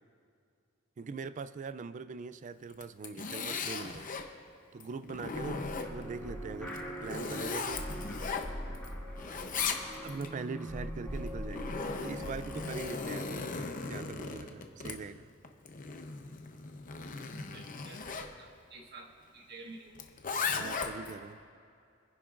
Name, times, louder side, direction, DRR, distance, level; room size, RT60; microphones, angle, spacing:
voice 1, 1.0-4.1 4.7-7.8 10.0-15.3 20.5-21.4, right 4 dB, 40° right, 14 dB, 0.3 m, -42 dB
Zipper (clothing), 2.7-4.3 4.8-6.2 6.7-8.9 9.2-10.3 11.2-18.3 20.0-21.2, left 4 dB, 40° left, 0.8 m, -37 dB
sound 1, 5.3-13.0, equal, 5° left, 2.5 m, -41 dB
voice 2, 17.5-20.0, right 3 dB, 55° right, 0 dB, 1.6 m, -50 dB
26.0 x 10.5 x 2.5 m, 2.4 s
head